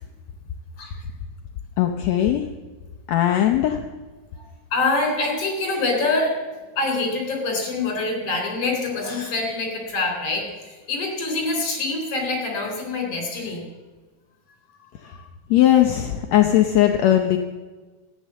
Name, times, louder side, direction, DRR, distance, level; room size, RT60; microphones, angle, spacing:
voice 1, 1.8-2.5 3.1-3.8 15.0-15.1 15.5-17.4, left 12 dB, 80° left, 5 dB, 1.5 m, -18 dB
voice 2, 4.7-6.3 6.8-13.7 14.8-15.2, left 3 dB, 45° left, 1 dB, 4.6 m, -25 dB
14.0 x 10.0 x 7.5 m, 1.3 s
omnidirectional pair, 4.1 m